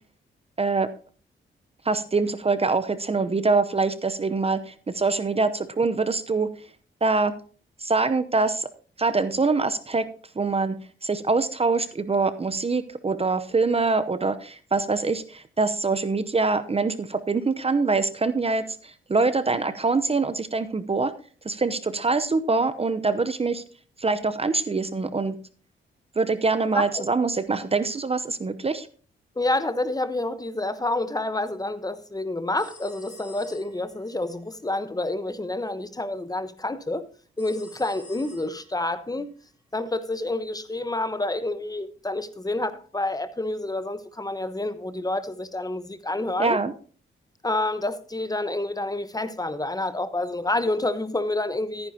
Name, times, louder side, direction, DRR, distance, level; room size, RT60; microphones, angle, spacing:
voice 1, 0.6-0.9 1.8-6.5 7.0-7.3 7.8-8.7 9.0-10.0 10.4-10.8 11.0-21.1 21.4-23.6 24.0-25.4 26.2-28.9 46.4-46.7, right 3 dB, 30° right, 0.8 m, -24 dB
voice 2, 29.4-37.0 37.4-39.3 39.7-46.6 47.4-51.9, left 2 dB, 20° left, 1.0 m, -28 dB
sound 1, 32.6-34.0 37.4-38.8, left 1 dB, 5° right, 3.7 m, -49 dB
14.0 x 9.7 x 2.8 m
cardioid pair, 65°, 21 cm